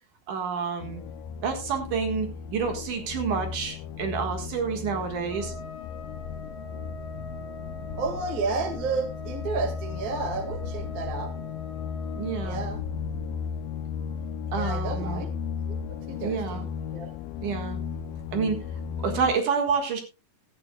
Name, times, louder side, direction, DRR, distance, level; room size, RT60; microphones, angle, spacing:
voice 1, 0.3-1.0 1.4-5.5 12.2-12.6 14.5-15.2 16.2-16.6 17.4-17.8 18.3-18.6 19.0-20.0, right 6 dB, 65° right, 5 dB, 3.0 m, -28 dB
sound 1, 0.8-19.3, left 6 dB, 85° left, 2.5 m, -35 dB
Trumpet, 5.3-12.6, left 1 dB, 90° right, 7.9 m, -44 dB
sound 2, 7.5-13.4, left 3 dB, 45° left, 1.9 m, -45 dB
voice 2, 7.9-11.3 12.4-12.8 14.6-15.3 15.7-16.6 16.9-17.1, right 4 dB, 35° right, 6 dB, 1.8 m, -32 dB
16.5 x 12.0 x 2.3 m, 0.28 s
omnidirectional pair, 4.1 m